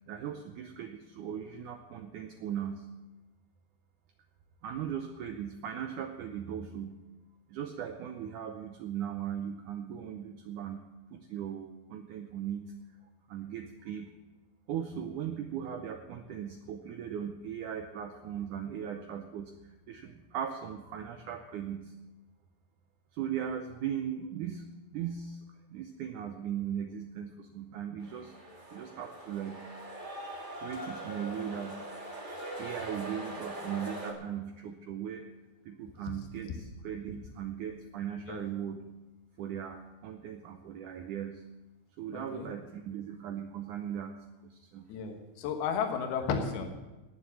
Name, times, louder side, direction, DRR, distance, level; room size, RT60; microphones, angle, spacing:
voice 1, 0.1-2.9 4.6-7.0 7.5-10.9 11.1-12.7 13.3-14.1 14.7-21.9 23.1-24.7 24.9-25.4 25.7-29.7 30.6-31.8 32.6-35.3 35.7-38.8 39.4-41.4 42.0-44.2 44.4-44.9, right 9 dB, 90° right, 5 dB, 1.8 m, -38 dB
sound 1, 28.0-34.1, right 1 dB, 35° right, 0.7 m, -42 dB
voice 2, 42.1-42.5 44.9-46.7, left 6 dB, 80° left, 4 dB, 3.3 m, -33 dB
18.0 x 7.2 x 7.1 m, 1.1 s
omnidirectional pair, 4.5 m